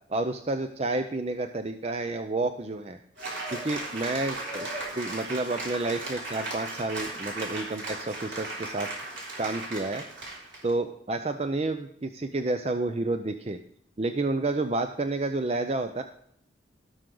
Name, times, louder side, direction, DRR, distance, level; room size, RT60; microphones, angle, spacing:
voice 1, 0.1-3.0 3.5-4.7 4.9-8.9 9.4-10.0 10.6-13.6 14.0-16.0, right 2 dB, 35° right, 8 dB, 0.5 m, -30 dB
Cheering / Applause, 3.2-10.7, right 2 dB, 85° right, 3.6 m, -36 dB
16.5 x 6.4 x 3.8 m, 0.72 s
head